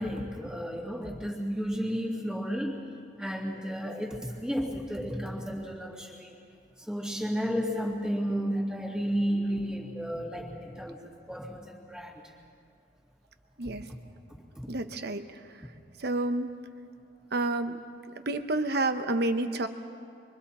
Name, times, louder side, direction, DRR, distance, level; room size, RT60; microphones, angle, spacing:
voice 1, 0.0-2.9 3.2-6.4 6.9-12.2, equal, 5° right, -2 dB, 2.4 m, -32 dB
voice 2, 14.7-15.2 16.0-16.5 17.3-17.8 18.3-19.7, right 2 dB, 55° right, 8 dB, 1.0 m, -29 dB
26.5 x 23.5 x 4.3 m, 2.3 s
head